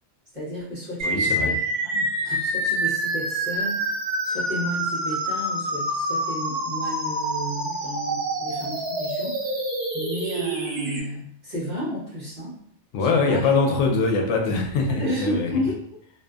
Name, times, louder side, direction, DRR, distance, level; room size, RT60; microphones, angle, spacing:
voice 1, 0.3-9.5 9.9-12.6 13.0-13.4 14.9-15.8, equal, 40° right, -9 dB, 1.1 m, -32 dB
voice 2, 1.0-1.5 12.9-15.5, left 4 dB, 80° left, 2 dB, 0.9 m, -22 dB
sound 1, 1.0-11.0, right 1 dB, 65° right, 1.3 m, -27 dB
2.5 x 2.5 x 2.3 m, 0.65 s
omnidirectional pair, 1.2 m